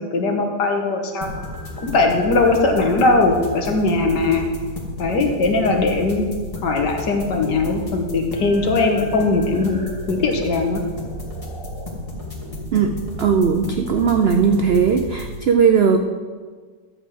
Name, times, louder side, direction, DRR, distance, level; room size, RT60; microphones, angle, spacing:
voice 1, 0.0-1.4 1.8-4.5 5.0-6.2 6.6-9.8 10.1-10.8, left 3 dB, 75° left, 3 dB, 1.9 m, -19 dB
sound 1, 1.2-15.3, left 1 dB, 20° left, 1.8 m, -32 dB
voice 2, 12.7-16.0, right 6 dB, 90° right, 5 dB, 0.5 m, -18 dB
13.0 x 4.9 x 7.6 m, 1.5 s
omnidirectional pair, 1.9 m